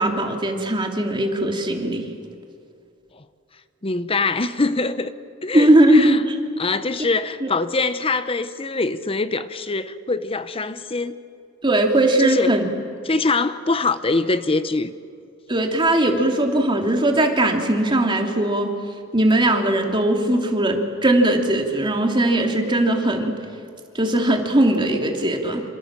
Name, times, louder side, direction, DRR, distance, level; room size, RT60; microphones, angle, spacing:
voice 1, 0.0-2.1 5.5-6.3 7.4-7.5 11.6-12.7 15.5-18.7 19.1-23.3 23.9-25.6, right 1 dB, 25° right, 2.8 m, -19 dB
voice 2, 3.8-5.1 5.4-6.2 6.6-11.1 12.2-12.5 13.0-14.9, left 3 dB, 30° left, 0.9 m, -23 dB
27.5 x 27.0 x 7.5 m
head